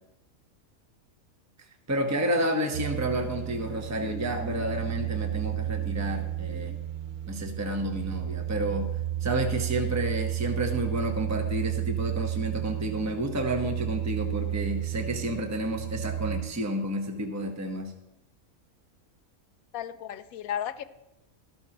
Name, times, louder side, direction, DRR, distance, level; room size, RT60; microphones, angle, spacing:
voice 1, 1.9-6.7 7.3-8.9 9.2-17.9, right 1 dB, 15° right, 3 dB, 0.9 m, -30 dB
sound 1, 2.7-16.4, right 13 dB, 45° right, 0.7 m, -32 dB
voice 2, 19.7-20.8, left 9 dB, 80° left, 13 dB, 1.0 m, -34 dB
13.5 x 13.0 x 2.9 m, 0.89 s
omnidirectional pair, 1.5 m